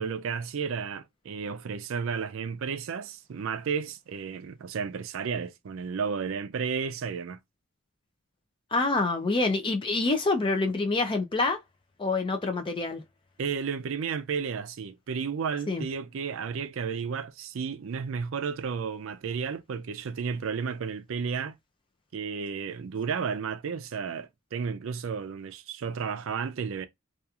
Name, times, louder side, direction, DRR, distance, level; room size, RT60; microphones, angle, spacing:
voice 1, 0.0-7.4 13.4-21.5 22.1-26.9, right 6 dB, 65° right, 0.4 m, -32 dB
voice 2, 8.7-11.6 12.0-13.0 15.7-15.8, left 3 dB, 25° left, 0.4 m, -26 dB
2.8 x 2.4 x 2.3 m
head